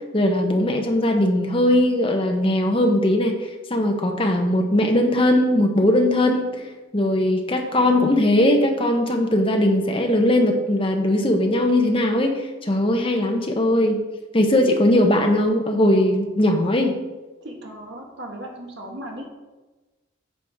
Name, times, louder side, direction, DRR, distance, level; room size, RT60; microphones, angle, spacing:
voice 1, 0.1-3.4 3.7-6.5 6.9-14.0 14.3-16.9, left 1 dB, 25° left, 3 dB, 0.9 m, -19 dB
voice 2, 17.4-19.3, right 1 dB, 60° right, 0 dB, 1.6 m, -38 dB
9.6 x 6.3 x 3.6 m, 1.2 s
head